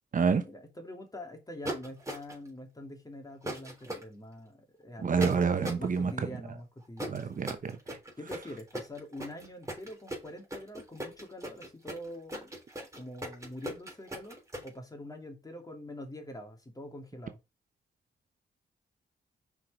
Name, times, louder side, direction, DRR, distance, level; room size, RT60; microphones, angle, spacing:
voice 1, 0.3-5.4 5.8-7.4 8.2-12.6 12.9-17.4, left 1 dB, 20° left, 2.6 m, -45 dB
sound 1, 1.6-2.5 3.5-4.0 5.2-5.9 7.0-14.7, right 1 dB, 15° right, 3.5 m, -38 dB
voice 2, 5.0-6.1 7.1-8.0, right 5 dB, 50° right, 0.9 m, -28 dB
5.7 x 4.7 x 5.0 m
cardioid pair, 75°, 18 cm